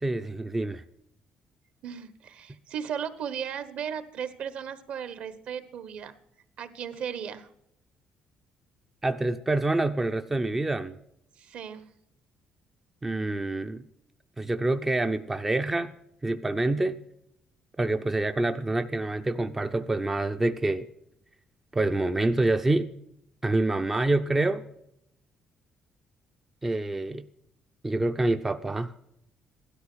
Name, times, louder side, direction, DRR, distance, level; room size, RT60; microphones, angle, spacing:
voice 1, 0.0-0.8 9.0-11.0 13.0-13.9 14.4-15.9 16.2-17.0 17.8-20.9 21.7-22.9 23.4-24.6 26.6-27.3 27.8-28.9, right 2 dB, 10° right, 8 dB, 0.5 m, -26 dB
voice 2, 1.8-6.2 6.6-7.5 11.4-11.9, right 8 dB, 55° right, 13 dB, 1.3 m, -36 dB
16.5 x 13.0 x 6.2 m, 0.78 s
cardioid pair, 175°, 3 cm